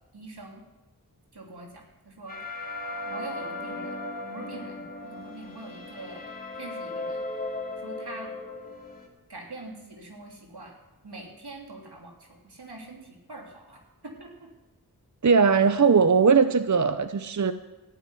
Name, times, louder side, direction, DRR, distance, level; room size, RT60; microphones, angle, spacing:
voice 1, 0.1-0.6 1.3-2.4 3.1-4.0 4.3-7.3 7.8-8.3 9.3-10.7 11.0-14.5, right 2 dB, 85° right, 0 dB, 3.3 m, -44 dB
sound 1, 2.3-9.1, left 2 dB, 25° left, 3.3 m, -36 dB
voice 2, 15.2-17.5, right 5 dB, 50° right, 11 dB, 0.7 m, -20 dB
14.0 x 9.1 x 9.8 m, 1.1 s
wide cardioid pair, 45°, 38 cm